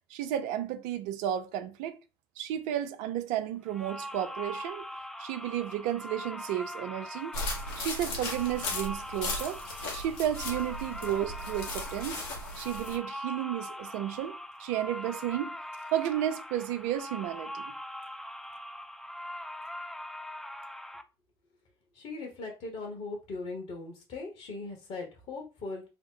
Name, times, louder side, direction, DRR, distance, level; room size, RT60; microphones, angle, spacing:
voice 1, 0.1-2.0 2.4-4.9 5.2-7.4 7.8-9.6 9.9-12.2 12.6-15.6 15.9-17.7, right 11 dB, 65° right, 0.5 m, -32 dB
sound 1, 3.7-21.0, equal, ahead, 0.3 m, -42 dB
sound 2, 7.3-13.0, left 2 dB, 70° left, 1.2 m, -37 dB
voice 2, 21.9-25.8, left 3 dB, 55° left, 1.2 m, -39 dB
2.9 x 2.0 x 3.7 m
hypercardioid pair, 75°, 13 cm